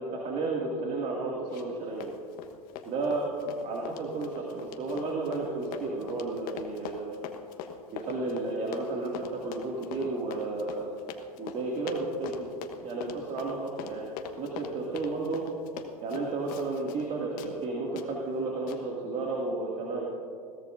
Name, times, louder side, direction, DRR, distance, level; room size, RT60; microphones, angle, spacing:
voice 1, 0.0-2.1 2.9-7.1 7.9-10.9 11.4-12.5 12.8-14.1 14.4-15.4 16.0-20.0, right 3 dB, 40° right, -2 dB, 2.3 m, -32 dB
Run, 1.5-1.8 2.0-17.1 17.4-17.5 18.0-18.1 18.7-18.8, left 8 dB, 50° left, 1.3 m, -42 dB
21.5 x 16.5 x 2.6 m, 2.4 s
hypercardioid pair, 90°, 19 cm